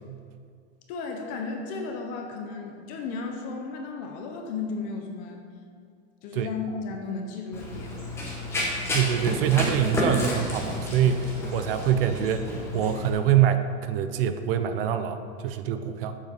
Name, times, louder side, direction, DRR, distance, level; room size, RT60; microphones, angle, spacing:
voice 1, 0.9-5.4 6.2-8.0, left 4 dB, 25° left, 3 dB, 0.5 m, -34 dB
Run, 7.5-13.1, left 1 dB, 5° left, 1.0 m, -31 dB
voice 2, 8.9-16.2, right 9 dB, 50° right, 9 dB, 0.6 m, -25 dB
7.3 x 6.5 x 6.7 m, 2.2 s
supercardioid pair, 175°, 36 cm